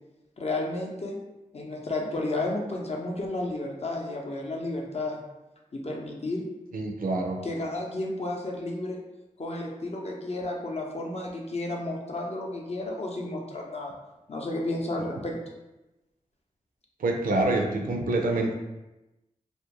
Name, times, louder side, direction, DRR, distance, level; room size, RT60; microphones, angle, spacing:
voice 1, 0.4-1.2 1.5-5.2 5.7-6.4 7.4-9.0 9.4-13.9 14.3-15.4, left 2 dB, 45° left, -1 dB, 0.6 m, -32 dB
voice 2, 6.7-7.4 17.0-18.5, right 2 dB, 80° right, 1 dB, 0.4 m, -26 dB
2.4 x 2.2 x 2.9 m, 0.99 s
cardioid pair, 40°, 14 cm